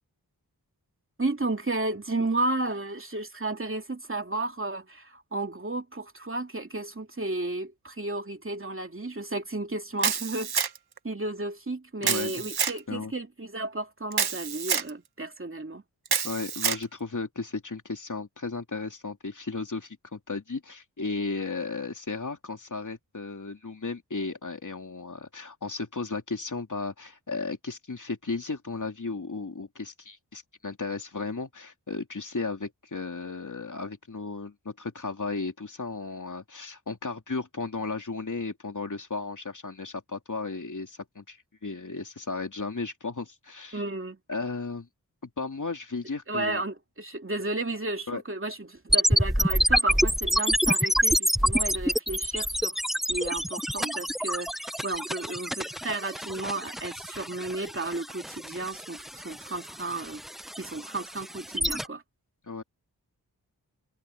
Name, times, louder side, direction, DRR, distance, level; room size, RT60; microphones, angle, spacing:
voice 1, 1.2-10.5 11.0-15.8 43.7-44.2 46.3-52.8 53.1-60.2 60.6-62.0, right 2 dB, 35° right, 2.5 m, -33 dB
Camera, 10.0-11.0 12.0-12.8 14.1-14.9 16.1-16.8, right 7 dB, 75° right, 1.1 m, -27 dB
voice 2, 12.0-12.4 12.9-13.1 16.2-43.8 44.3-44.9 45.2-46.6 48.1-48.2 62.4-62.6, left 4 dB, 50° left, 3.3 m, -35 dB
sound 1, 48.9-61.9, equal, ahead, 0.5 m, -27 dB
cardioid pair, 45°, 38 cm